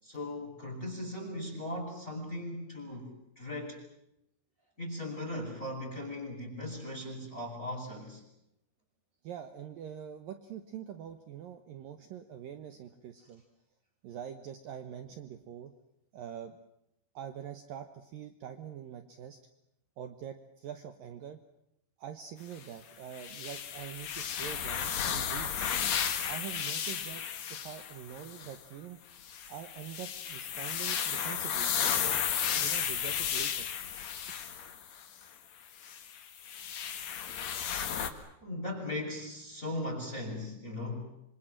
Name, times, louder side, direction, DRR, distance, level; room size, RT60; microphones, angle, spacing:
voice 1, 0.0-3.1 3.3-3.8 4.8-8.2 38.4-41.1, left 1 dB, 15° left, -3 dB, 5.1 m, -38 dB
voice 2, 9.2-13.4 14.0-15.7 16.1-16.6 17.1-19.4 20.0-21.4 22.0-25.6 26.3-27.2 27.5-29.0 29.5-33.7, right 9 dB, 75° right, 8 dB, 2.1 m, -44 dB
sound 1, 23.1-28.6 29.2-35.0 35.8-38.1, left 8 dB, 60° left, 1.9 m, -34 dB
26.0 x 25.5 x 7.5 m, 0.80 s
omnidirectional pair, 5.6 m